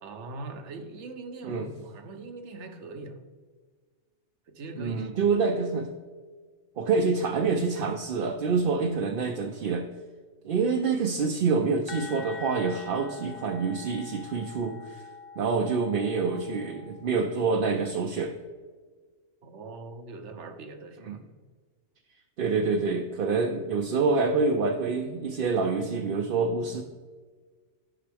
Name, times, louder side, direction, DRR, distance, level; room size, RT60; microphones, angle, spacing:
voice 1, 0.0-3.2 4.5-5.1 19.4-21.3, right 3 dB, 75° right, 7 dB, 1.1 m, -41 dB
voice 2, 4.8-5.9 6.8-9.9 10.4-15.0 15.4-18.3 21.0-21.2 22.4-26.8, right 4 dB, 55° right, 3 dB, 0.7 m, -27 dB
sound 1, 11.9-17.5, left 5 dB, 60° left, 0.8 m, -44 dB
11.5 x 5.7 x 3.4 m, 1.5 s
omnidirectional pair, 1.2 m